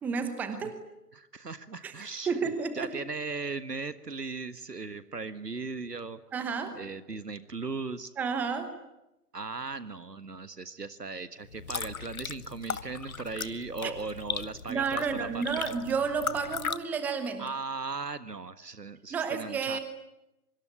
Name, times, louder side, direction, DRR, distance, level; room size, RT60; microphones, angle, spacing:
voice 1, 0.0-0.8 1.8-2.9 6.3-6.8 8.2-8.7 13.8-13.9 14.7-17.5 19.1-19.8, right 5 dB, 5° right, 10 dB, 1.0 m, -31 dB
voice 2, 1.1-6.2 6.7-8.1 9.3-15.4 17.4-19.8, right 4 dB, 85° right, 13 dB, 1.7 m, -38 dB
sound 1, 11.4-16.8, left 6 dB, 60° left, 1.5 m, -37 dB
25.0 x 23.5 x 9.9 m, 0.91 s
figure-of-eight pair, 140°, 47 cm